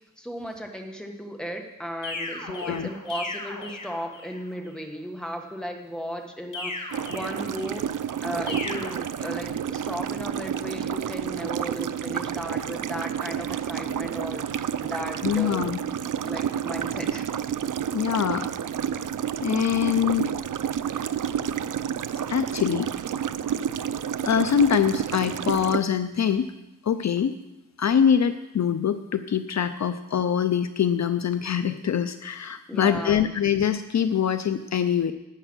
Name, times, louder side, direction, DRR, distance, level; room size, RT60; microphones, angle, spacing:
voice 1, 0.2-15.8 16.2-17.3 32.7-33.3, equal, ahead, 2 dB, 1.4 m, -35 dB
sound 1, 2.0-4.4 6.5-7.9 8.5-8.9, left 2 dB, 90° left, 4.8 m, -36 dB
voice 2, 2.5-2.9 15.2-15.8 17.9-18.5 19.4-20.3 22.3-22.9 24.2-26.5 26.8-27.4 27.8-35.1, left 8 dB, 60° left, 10 dB, 0.5 m, -24 dB
sound 2, 6.9-25.8, right 9 dB, 70° right, 0.5 m, -30 dB
11.5 x 9.0 x 6.1 m, 0.96 s
wide cardioid pair, 125°, 32 cm